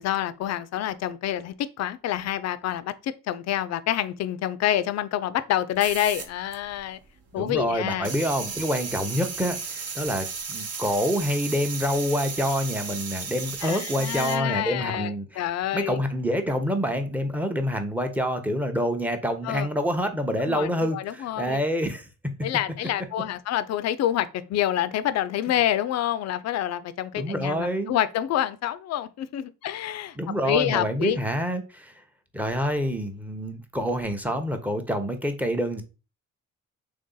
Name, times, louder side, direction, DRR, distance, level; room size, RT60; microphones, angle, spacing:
voice 1, 0.0-7.0 7.3-8.1 13.6-16.0 19.4-19.7 20.4-21.6 22.4-30.2 30.4-31.2, left 11 dB, 60° left, 0.4 m, -27 dB
sound 1, 5.7-7.0 7.3-14.4, right 5 dB, 55° right, 0.8 m, -35 dB
voice 2, 7.3-15.4 15.7-22.1 27.1-28.0 30.2-31.9 32.3-35.8, equal, 5° right, 0.7 m, -27 dB
3.4 x 2.7 x 3.7 m
cardioid pair, 90°, 30 cm